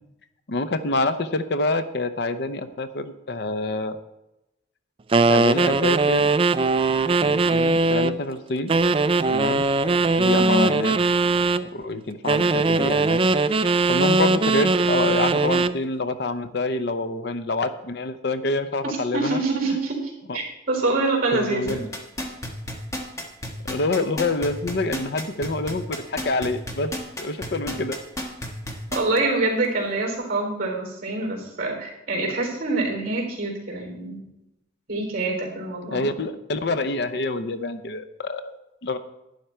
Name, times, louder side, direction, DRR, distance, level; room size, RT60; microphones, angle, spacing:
voice 1, 0.5-4.0 5.3-6.3 7.2-8.8 9.3-9.7 10.1-11.0 11.6-13.2 13.9-19.4 20.3-20.4 21.3-21.8 23.7-26.9 27.2-28.0 35.9-39.0, left 2 dB, 60° left, 10 dB, 0.6 m, -27 dB
sound 1, 5.1-8.2 8.7-11.6 12.3-15.8, right 3 dB, 30° right, 0.3 m, -20 dB
voice 2, 10.3-10.7 18.8-21.8 28.9-34.2 34.9-36.1, right 2 dB, 50° right, 1 dB, 3.8 m, -26 dB
sound 2, 21.7-29.2 29.6-29.7, left 1 dB, 15° left, 1.3 m, -31 dB
11.5 x 9.5 x 4.4 m, 0.91 s
head